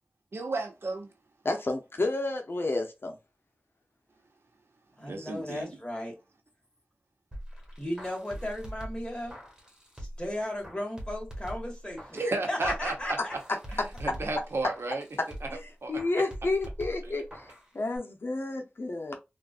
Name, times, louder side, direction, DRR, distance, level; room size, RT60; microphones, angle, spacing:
voice 1, 0.3-1.1 5.0-5.7 12.1-13.2 14.0-15.0 15.4-15.5 15.8-16.0, right 2 dB, 85° right, 0.9 m, -33 dB
voice 2, 1.4-3.1 14.1-14.2 15.2-15.3 15.5-17.5 17.7-19.2, left 2 dB, 70° left, 0.6 m, -30 dB
voice 3, 5.0-6.1 7.8-9.4 10.0-12.2 12.5-13.3, left 1 dB, 25° left, 1.7 m, -35 dB
sound 1, 7.3-10.3 10.6-12.3 12.6-15.6 16.0-17.7 18.0-18.1, equal, 15° right, 1.5 m, -42 dB
3.7 x 2.5 x 2.4 m
wide cardioid pair, 65°, 4 cm